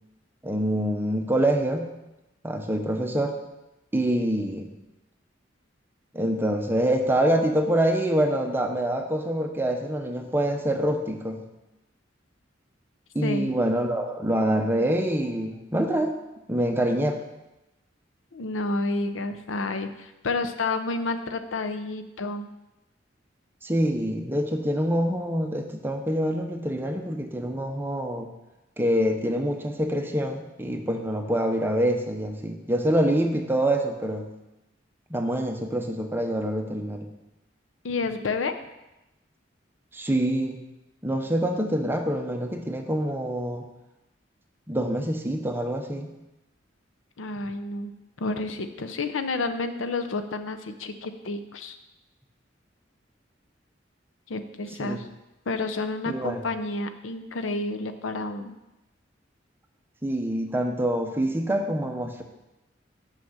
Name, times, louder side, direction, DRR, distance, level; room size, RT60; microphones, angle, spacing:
voice 1, 0.4-1.9 2.4-3.4 3.9-4.7 6.1-11.4 13.1-16.2 16.5-17.2 23.6-28.3 28.8-34.3 35.1-37.1 39.9-40.6 41.0-43.7 44.7-46.1 54.8-55.0 56.1-56.4 60.0-62.2, right 1 dB, 10° right, 4 dB, 0.8 m, -25 dB
voice 2, 18.3-22.5 37.8-38.5 47.2-51.8 54.3-55.1 55.5-58.5, left 3 dB, 85° left, 8 dB, 0.6 m, -30 dB
6.1 x 5.8 x 6.4 m, 0.96 s
head